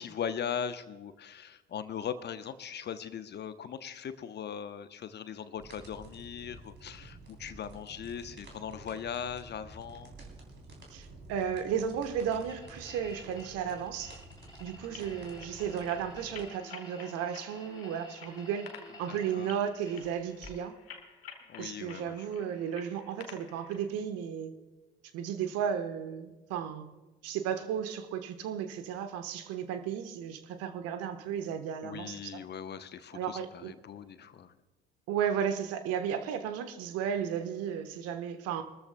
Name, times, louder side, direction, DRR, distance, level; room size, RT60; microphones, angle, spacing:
voice 1, 0.0-10.1 19.1-19.5 21.5-22.2 31.8-34.5, left 8 dB, 35° left, 12 dB, 0.9 m, -39 dB
sound 1, 5.6-16.4, right 2 dB, 35° right, 3.7 m, -51 dB
voice 2, 10.9-14.2 14.6-18.7 19.0-20.7 21.6-24.5 25.1-26.9 27.2-32.4 33.1-33.7 35.1-38.6, right 8 dB, 55° right, 9 dB, 1.3 m, -34 dB
sound 2, 12.3-20.7, left 1 dB, 15° left, 3.7 m, -51 dB
sound 3, 14.8-23.9, left 6 dB, 80° left, 1.4 m, -52 dB
23.5 x 13.5 x 2.3 m, 1.2 s
figure-of-eight pair, 60°, 29 cm